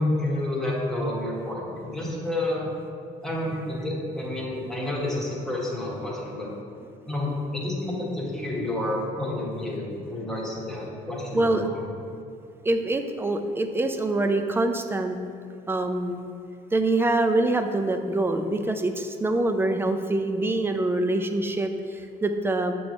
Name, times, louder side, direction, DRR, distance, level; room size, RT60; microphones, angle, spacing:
voice 1, 0.0-2.7 3.2-6.5 7.1-11.7, left 1 dB, ahead, -5 dB, 1.5 m, -29 dB
voice 2, 11.3-11.7 12.6-15.2 15.7-16.3 16.7-22.7, right 2 dB, 15° right, 6 dB, 0.4 m, -25 dB
6.7 x 3.0 x 5.2 m, 2.4 s
cardioid pair, 110°, 17 cm